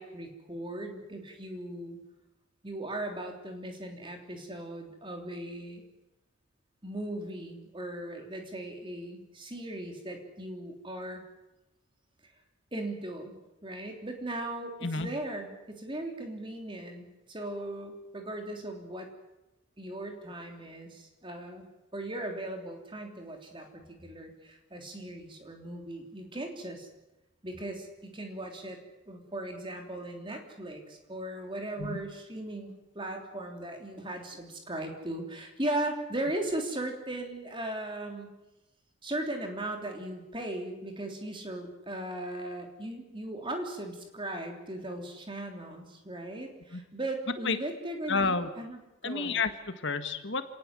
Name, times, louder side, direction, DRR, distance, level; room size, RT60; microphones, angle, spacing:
voice 1, 0.0-2.0 2.6-5.8 6.8-11.2 12.2-12.3 12.7-19.1 19.8-21.7 21.9-26.9 27.4-28.8 29.1-38.3 39.0-49.4, right 1 dB, 25° right, 3 dB, 3.5 m, -38 dB
voice 2, 48.1-48.5 49.0-50.4, left 4 dB, 55° left, 9 dB, 1.7 m, -30 dB
27.5 x 18.5 x 7.7 m, 1.0 s
head